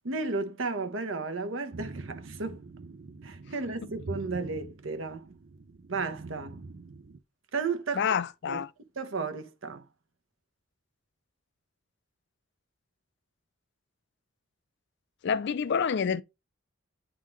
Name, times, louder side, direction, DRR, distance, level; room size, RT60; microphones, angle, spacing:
voice 1, 0.0-2.6 3.2-5.3 5.9-6.6 7.5-8.1 8.5-8.6 9.0-9.8, right 4 dB, 85° right, 1.0 m, -33 dB
sound 1, 1.7-7.2, right 3 dB, 55° right, 0.5 m, -44 dB
voice 2, 8.0-8.7 15.2-16.2, left 6 dB, 60° left, 0.4 m, -27 dB
9.1 x 3.8 x 3.1 m
head